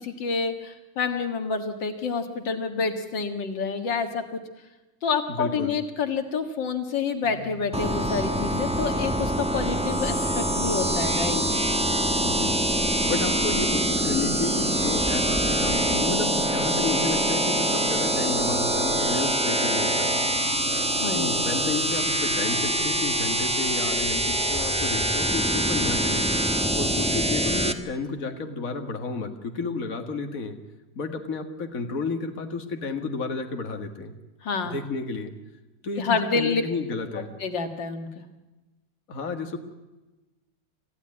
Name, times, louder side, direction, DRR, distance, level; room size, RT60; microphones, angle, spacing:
voice 1, 0.0-4.4 5.0-11.4 21.0-21.2 34.4-34.7 36.0-36.6 37.4-38.2, left 5 dB, 85° left, 6 dB, 2.4 m, -28 dB
voice 2, 5.3-5.8 12.2-12.5 13.0-20.1 21.1-26.3 26.7-30.6 31.0-34.1 34.7-35.3 35.8-37.3 39.1-39.6, left 4 dB, 50° left, 5 dB, 2.3 m, -31 dB
sound 1, 7.2-23.8, left 3 dB, 65° left, 5.8 m, -42 dB
sound 2, 7.7-27.7, right 1 dB, 5° right, 0.9 m, -24 dB
27.0 x 15.0 x 9.7 m, 1.1 s
omnidirectional pair, 2.0 m